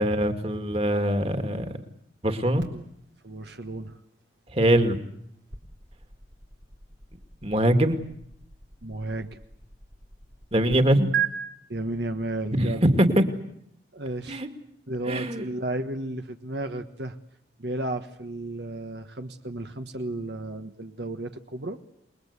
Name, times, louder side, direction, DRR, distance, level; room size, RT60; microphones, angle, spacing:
voice 1, 0.0-1.8 2.2-2.6 4.5-5.0 7.4-8.0 10.5-11.1 12.5-13.2 14.3-14.5 15.1-15.4, right 1 dB, 35° right, 7 dB, 2.3 m, -22 dB
sound 1, 2.6-10.8 11.1-11.3, right 9 dB, 90° right, 3.9 m, -38 dB
voice 2, 3.2-4.0 8.8-9.4 11.7-12.8 13.9-14.4 14.9-17.2 17.6-21.8, right 1 dB, 70° right, 7 dB, 1.5 m, -33 dB
28.0 x 21.5 x 8.3 m, 0.72 s
head